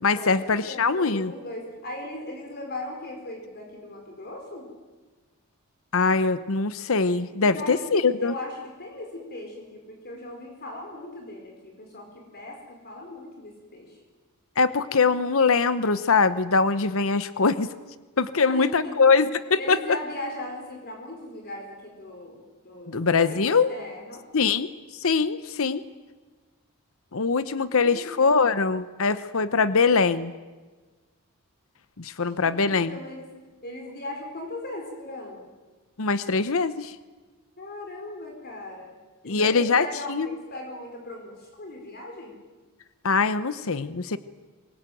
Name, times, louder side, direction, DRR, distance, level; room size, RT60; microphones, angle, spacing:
voice 1, 0.0-1.3 5.9-8.3 14.6-17.7 18.2-19.8 22.9-23.7 24.3-24.7 25.0-25.8 27.1-30.3 32.0-32.9 36.0-36.9 39.3-40.3 43.0-44.2, left 4 dB, 65° left, 13 dB, 0.9 m, -22 dB
voice 2, 0.6-4.7 7.4-14.0 18.5-19.1 19.6-24.2 27.7-28.5 32.2-33.3 33.6-35.5 37.6-39.0 39.2-42.3, left 1 dB, 45° left, 2 dB, 4.5 m, -38 dB
25.0 x 21.5 x 9.2 m, 1.3 s
head